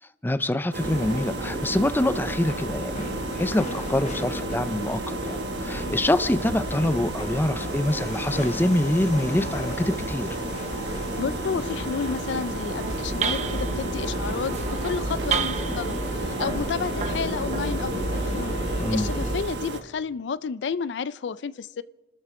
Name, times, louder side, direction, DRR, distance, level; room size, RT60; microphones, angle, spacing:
voice 1, 0.2-10.4 18.8-19.1, left 1 dB, 10° left, 0.5 m, -25 dB
sound 1, 0.7-19.8, right 3 dB, 75° right, 1.2 m, -33 dB
sound 2, 0.8-19.4, left 1 dB, 45° left, 1.4 m, -34 dB
voice 2, 11.2-18.5 18.9-21.8, left 6 dB, 90° left, 0.4 m, -31 dB
sound 3, 12.7-19.6, right 3 dB, 40° right, 0.9 m, -31 dB
29.0 x 13.0 x 3.7 m
head